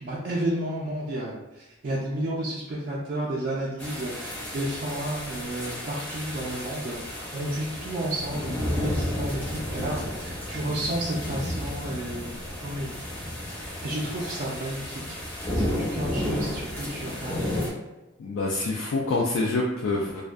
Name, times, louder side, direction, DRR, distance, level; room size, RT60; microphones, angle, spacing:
voice 1, 0.0-12.3 12.6-13.0 13.8-17.5, right 1 dB, 45° right, -6 dB, 0.3 m, -32 dB
sound 1, 3.8-17.7, left 1 dB, 10° left, 0.5 m, -32 dB
voice 2, 18.2-20.2, left 2 dB, 80° left, -2 dB, 0.3 m, -26 dB
2.5 x 2.1 x 2.3 m, 1.0 s
head